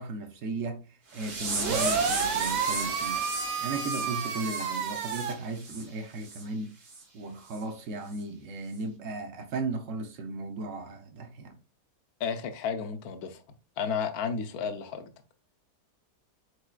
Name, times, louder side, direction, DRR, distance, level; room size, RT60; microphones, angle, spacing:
voice 1, 0.0-6.8 7.1-11.6, right 3 dB, 60° right, 0.9 m, -36 dB
sound 1, 1.1-5.8 6.2-6.4 6.9-7.0 7.5-7.6 8.1-8.2, right 3 dB, 40° right, 0.9 m, -36 dB
sound 2, 1.6-5.3, right 5 dB, 80° right, 1.4 m, -30 dB
voice 2, 12.2-13.4 13.8-15.1, left 6 dB, 70° left, 1.1 m, -32 dB
4.8 x 4.3 x 2.2 m
omnidirectional pair, 1.8 m